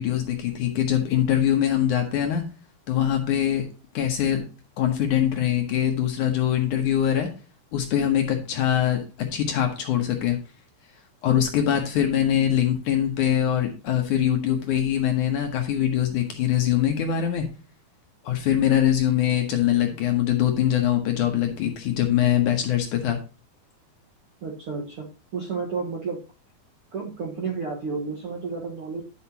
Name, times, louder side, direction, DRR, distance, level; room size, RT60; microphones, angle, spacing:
voice 1, 0.0-2.4 2.9-3.7 3.9-4.4 4.8-7.3 7.7-10.4 11.2-17.5 18.2-23.2, left 10 dB, 65° left, 3 dB, 2.2 m, -23 dB
voice 2, 24.4-25.1 25.3-26.2 26.9-29.0, right 4 dB, 60° right, 0 dB, 1.4 m, -31 dB
10.5 x 6.5 x 2.8 m, 0.34 s
omnidirectional pair, 4.5 m